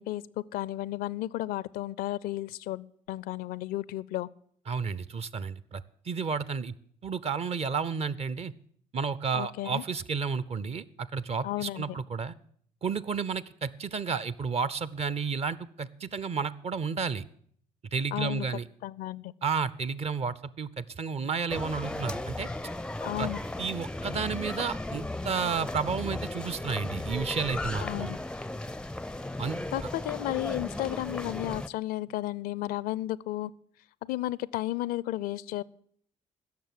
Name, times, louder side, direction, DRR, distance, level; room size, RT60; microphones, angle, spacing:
voice 1, 0.0-4.3 9.3-9.8 11.4-11.9 18.1-18.5 18.8-19.3 23.0-23.4 27.8-28.2 29.7-33.5 34.0-35.6, left 16 dB, 60° left, 21 dB, 0.4 m, -33 dB
voice 2, 4.7-6.7 7.0-8.5 8.9-12.3 12.8-17.2 17.9-18.6 19.4-22.5 23.2-23.3 23.6-28.1 29.4-29.6, right 5 dB, 40° right, 18 dB, 0.6 m, -32 dB
sound 1, 21.5-31.7, left 2 dB, 5° left, 0.5 m, -36 dB
16.5 x 6.7 x 7.5 m, 0.62 s
figure-of-eight pair, 45°, 17 cm